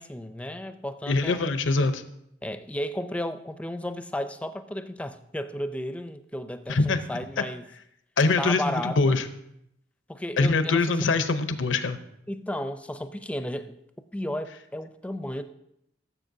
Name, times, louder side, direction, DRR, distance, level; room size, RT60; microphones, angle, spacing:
voice 1, 0.0-1.5 2.4-7.6 8.4-9.2 10.1-11.0 12.3-13.8 14.1-15.4, left 1 dB, 5° left, 10 dB, 0.4 m, -33 dB
voice 2, 1.1-2.0 6.7-7.0 8.2-9.2 10.4-12.0, left 3 dB, 85° left, 10 dB, 0.7 m, -23 dB
15.0 x 7.2 x 2.7 m, 0.77 s
head